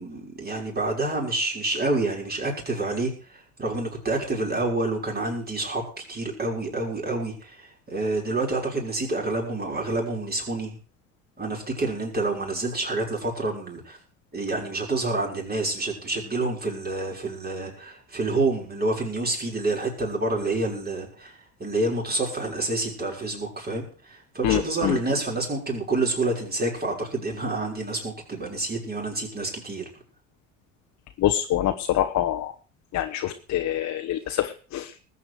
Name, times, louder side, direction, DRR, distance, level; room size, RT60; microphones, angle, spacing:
voice 1, 0.0-10.8 11.4-14.0 14.3-29.9, right 2 dB, 25° right, -1 dB, 6.1 m, -28 dB
voice 2, 24.4-25.0 31.2-32.5 32.9-35.0, left 12 dB, 45° left, 7 dB, 1.1 m, -25 dB
20.0 x 8.6 x 4.9 m, 0.39 s
hypercardioid pair, 65°, 37 cm